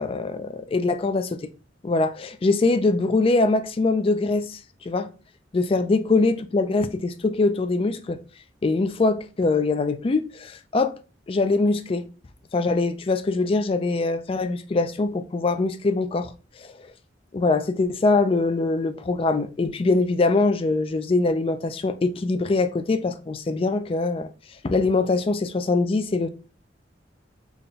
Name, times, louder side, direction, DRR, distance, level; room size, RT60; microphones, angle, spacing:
voice 1, 0.0-1.4 1.8-4.6 4.9-5.1 5.5-8.2 8.6-10.9 11.3-12.1 12.5-16.3 16.6-16.7 17.3-24.3 24.6-26.3, left 3 dB, 30° left, 0.3 m, -23 dB
3.5 x 2.2 x 3.9 m
head